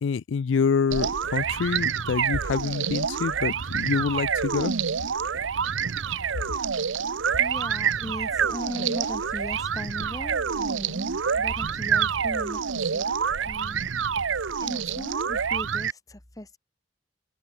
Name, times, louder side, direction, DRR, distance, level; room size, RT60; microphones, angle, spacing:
voice 1, 0.0-4.7, left 5 dB, 75° left, 0.4 m, -26 dB
sound 1, 0.9-15.9, right 6 dB, 85° right, 0.8 m, -27 dB
voice 2, 7.4-16.6, left 1 dB, 20° left, 1.3 m, -39 dB
open air
head